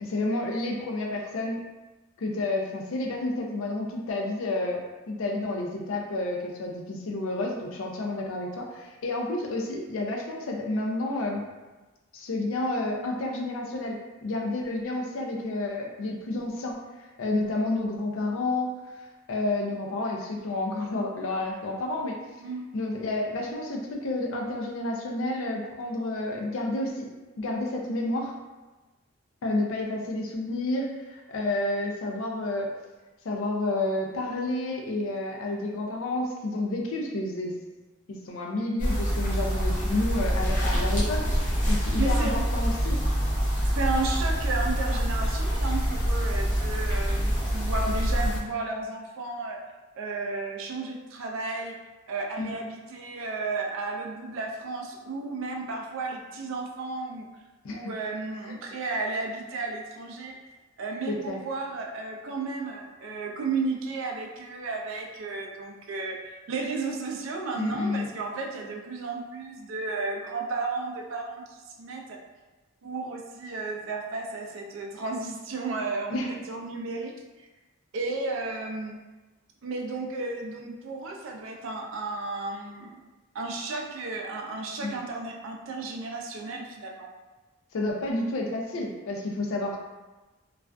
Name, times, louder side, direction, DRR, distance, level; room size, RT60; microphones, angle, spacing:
voice 1, 0.0-1.6 2.2-11.4 12.1-18.7 19.3-22.2 22.7-27.1 27.4-28.3 29.4-32.7 33.2-37.5 38.1-43.0 52.4-52.5 57.6-57.8 58.5-58.6 61.1-61.4 67.6-68.1 76.1-76.3 84.8-85.0 87.7-89.8, left 2 dB, 75° left, 0 dB, 0.4 m, -30 dB
sound 1, 38.8-48.4, equal, 40° left, 0.7 m, -26 dB
voice 2, 42.0-42.4 43.6-49.6 50.0-51.7 52.1-57.3 57.7-60.4 60.8-66.2 66.5-72.2 72.8-77.1 77.9-79.0 79.6-83.0 83.3-87.1, right 3 dB, 70° right, 1 dB, 0.4 m, -33 dB
2.4 x 2.3 x 2.2 m, 1.2 s
head